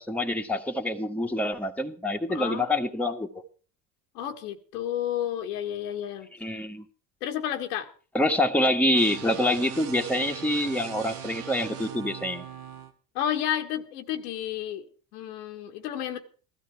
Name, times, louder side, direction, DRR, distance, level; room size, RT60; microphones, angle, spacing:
voice 1, 0.0-3.4 6.4-6.8 8.1-12.5, left 1 dB, 5° left, 3 dB, 1.6 m, -26 dB
voice 2, 2.3-2.7 4.1-6.3 7.2-7.9 13.1-14.8 15.1-16.2, left 10 dB, 90° left, 4 dB, 1.8 m, -31 dB
sound 1, 8.9-12.9, right 9 dB, 85° right, 1.8 m, -40 dB
15.5 x 13.0 x 4.8 m, 0.39 s
supercardioid pair, 90°, 44 cm